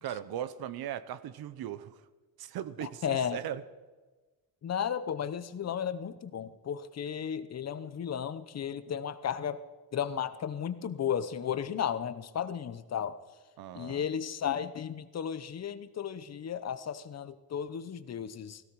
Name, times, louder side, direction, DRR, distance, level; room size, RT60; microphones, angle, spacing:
voice 1, 0.0-2.1 2.4-3.6 5.6-5.8 13.6-14.1, right 10 dB, 85° right, 1.0 m, -38 dB
voice 2, 2.8-3.4 4.6-9.6 9.9-13.2 13.7-18.6, left 8 dB, 45° left, 0.9 m, -34 dB
17.5 x 16.5 x 4.8 m
cardioid pair, 130°, 36 cm